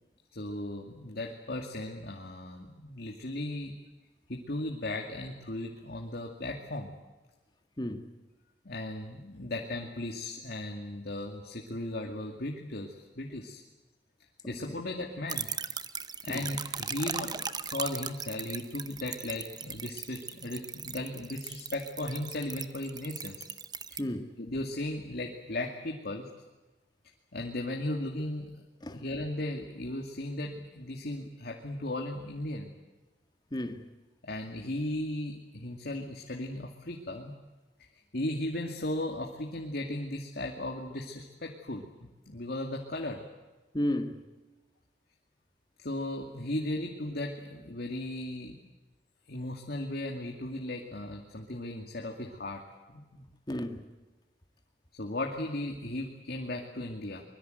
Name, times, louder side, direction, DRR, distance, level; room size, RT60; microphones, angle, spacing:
voice 1, 0.3-3.7 4.3-6.9 8.6-13.6 14.5-15.5 16.2-23.5 23.9-24.0 24.4-26.3 27.3-28.5 28.9-32.7 34.2-37.3 37.8-43.2 45.8-48.7 49.3-52.6 52.9-53.2 55.0-57.2, left 1 dB, 60° left, 2.4 m, -36 dB
voice 2, 7.8-8.1 14.4-14.8 16.3-16.4 24.0-24.4 28.8-29.0 33.5-33.9 43.7-44.2 53.5-53.8, left 1 dB, 25° left, 2.0 m, -33 dB
sound 1, 15.3-24.0, right 6 dB, 25° right, 0.9 m, -38 dB
24.5 x 22.5 x 7.9 m
head